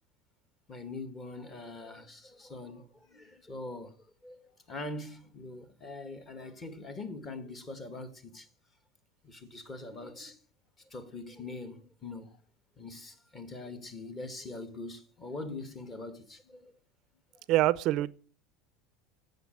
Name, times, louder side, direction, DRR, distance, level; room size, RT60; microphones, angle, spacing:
voice 1, 0.7-3.9 4.2-8.5 9.2-10.4 10.9-12.3 12.8-16.7, left 2 dB, 20° left, 1.8 m, -43 dB
voice 2, 17.5-18.1, right 15 dB, 45° right, 0.5 m, -25 dB
18.0 x 6.8 x 7.7 m
supercardioid pair, 155°, 0 cm